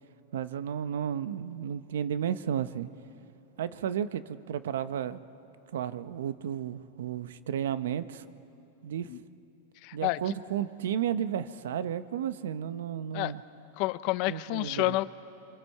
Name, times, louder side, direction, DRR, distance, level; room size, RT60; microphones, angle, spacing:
voice 1, 0.3-2.9 3.6-5.2 5.7-8.3 8.8-9.1 9.9-13.4 14.3-15.0, right 9 dB, 80° right, 13 dB, 0.7 m, -33 dB
voice 2, 9.8-10.2 13.1-13.3 13.8-15.0, left 19 dB, 45° left, 16 dB, 0.5 m, -29 dB
29.5 x 24.5 x 4.7 m, 2.8 s
supercardioid pair, 155°, 0 cm